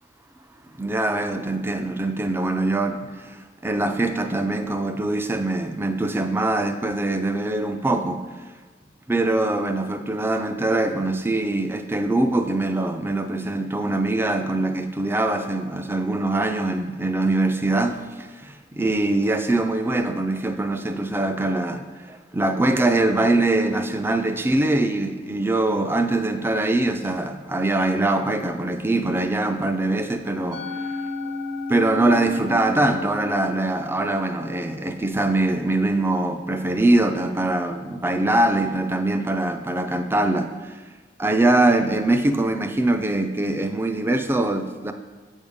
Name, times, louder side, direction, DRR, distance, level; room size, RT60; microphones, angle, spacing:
voice 1, 0.7-8.2 9.1-30.9 31.7-40.8 41.2-44.9, right 2 dB, 10° right, 7 dB, 0.3 m, -23 dB
Musical instrument, 30.5-36.9, left 3 dB, 60° left, 0.6 m, -35 dB
8.4 x 3.6 x 5.3 m, 1.3 s
head